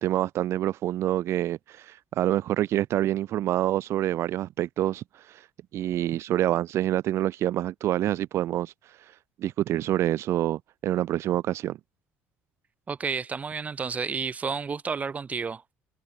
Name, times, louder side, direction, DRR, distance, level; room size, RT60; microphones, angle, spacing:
voice 1, 0.0-5.4 5.7-8.7 9.4-11.8, right 13 dB, 60° right, 0.8 m, -27 dB
voice 2, 12.9-15.6, right 5 dB, 30° right, 1.1 m, -31 dB
supercardioid pair, 95°, 5 cm